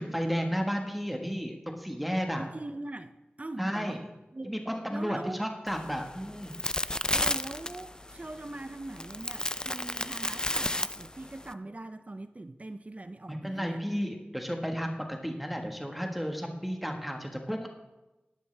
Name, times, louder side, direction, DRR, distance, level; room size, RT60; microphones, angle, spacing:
voice 1, 0.0-2.5 3.6-4.0 4.4-6.5 13.3-17.7, equal, ahead, 1.4 m, -33 dB
voice 2, 2.4-4.0 4.3-4.6 4.9-5.4 7.1-13.8, right 2 dB, 40° right, 0.5 m, -42 dB
sound 1, 5.7-11.5, left 1 dB, 20° left, 0.4 m, -33 dB
11.5 x 11.5 x 3.3 m
wide cardioid pair, 60°, 4 cm